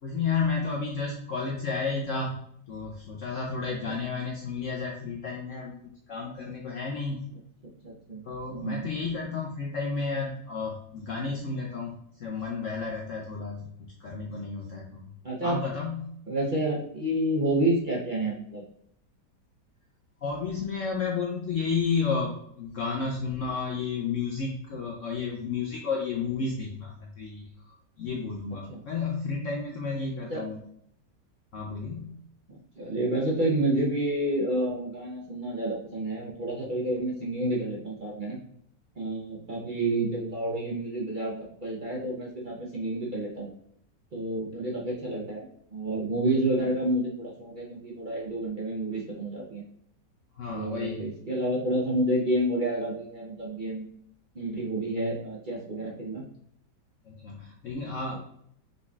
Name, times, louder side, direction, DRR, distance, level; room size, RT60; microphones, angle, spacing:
voice 1, 0.0-2.3 2.7-7.3 8.2-15.1 15.4-16.1 20.2-30.6 31.5-32.1 50.4-51.1 57.1-58.2, left 5 dB, 65° left, 0 dB, 0.8 m, -32 dB
voice 2, 7.8-8.8 15.2-15.6 16.3-18.6 28.7-28.8 30.3-30.4 32.8-38.4 39.0-43.5 44.1-45.4 45.7-49.6 50.5-53.9 54.3-56.2 58.1-58.2, right 1 dB, 40° right, -4 dB, 0.7 m, -29 dB
5.1 x 3.9 x 2.4 m, 0.71 s
omnidirectional pair, 1.9 m